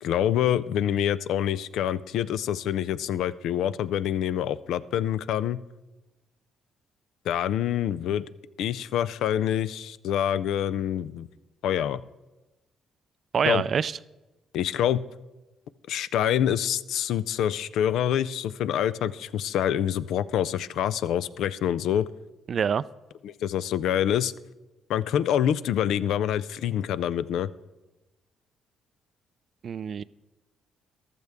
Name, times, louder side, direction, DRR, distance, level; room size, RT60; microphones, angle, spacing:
voice 1, 0.0-5.6 7.3-8.2 8.6-11.3 11.6-12.0 13.4-13.6 14.5-15.0 15.9-22.1 23.2-24.3 24.9-27.5, left 10 dB, 80° left, 16 dB, 0.4 m, -26 dB
voice 2, 13.3-13.9 22.5-22.8 29.6-30.0, right 7 dB, 55° right, 18 dB, 0.3 m, -25 dB
14.5 x 12.0 x 3.5 m, 1.1 s
cardioid pair, 90°, 0 cm